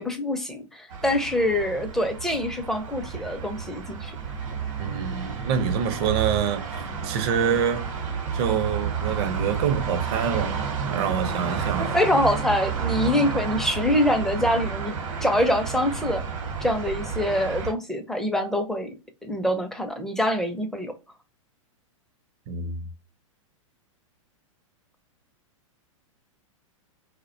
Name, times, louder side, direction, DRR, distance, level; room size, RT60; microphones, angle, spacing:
voice 1, 0.0-4.2 11.8-14.9 15.2-16.2 16.6-18.9 19.2-20.9, left 1 dB, ahead, 0.4 m, -25 dB
sound 1, 0.9-17.7, right 6 dB, 70° right, 0.9 m, -31 dB
voice 2, 4.8-6.6 7.0-7.9 8.3-12.0 22.5-22.8, right 7 dB, 50° right, 0.5 m, -26 dB
2.3 x 2.1 x 2.5 m
hypercardioid pair, 115°, 17 cm